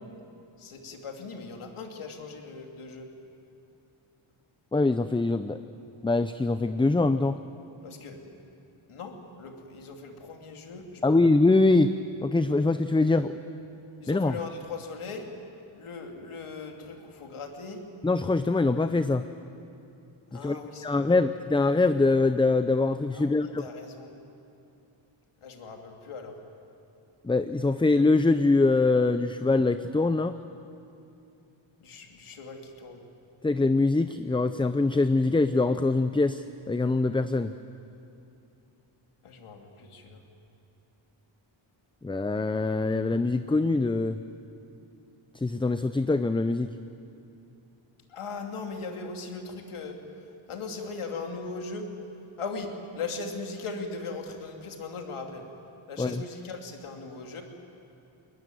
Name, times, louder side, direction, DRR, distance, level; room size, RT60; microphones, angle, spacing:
voice 1, 0.6-3.1 7.8-8.3 8.9-11.2 14.0-15.3 15.8-17.8 20.3-21.2 23.1-24.1 25.4-26.4 31.8-33.0 39.2-40.2 48.1-50.0 50.5-51.9 52.4-55.5 55.9-57.4, left 4 dB, 85° left, 3 dB, 2.7 m, -39 dB
voice 2, 4.7-5.6 6.0-7.4 11.0-11.9 12.2-13.3 14.1-14.3 18.0-19.2 20.4-23.6 27.2-30.4 33.4-37.5 42.0-44.2 45.4-46.7 56.0-56.2, left 3 dB, 10° left, 11 dB, 0.4 m, -23 dB
21.5 x 20.5 x 9.3 m, 2.7 s
wide cardioid pair, 110°, 49 cm